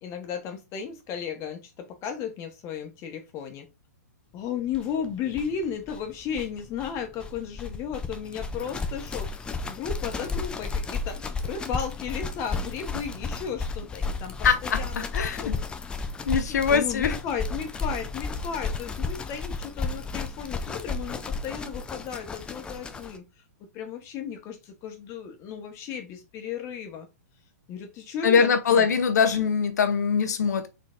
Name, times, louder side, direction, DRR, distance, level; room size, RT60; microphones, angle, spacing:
voice 1, 0.0-3.7 4.3-14.4 14.6-15.7 16.5-23.2 23.6-27.1 27.7-28.9, left 7 dB, 30° left, 1.1 m, -34 dB
sound 1, 4.7-4.8 5.0-5.1 5.3-23.2, left 4 dB, 10° left, 0.4 m, -33 dB
voice 2, 14.4-15.6 16.3-17.2 28.2-30.7, left 6 dB, 75° left, 0.8 m, -23 dB
4.1 x 3.9 x 2.5 m
hypercardioid pair, 130°, 9 cm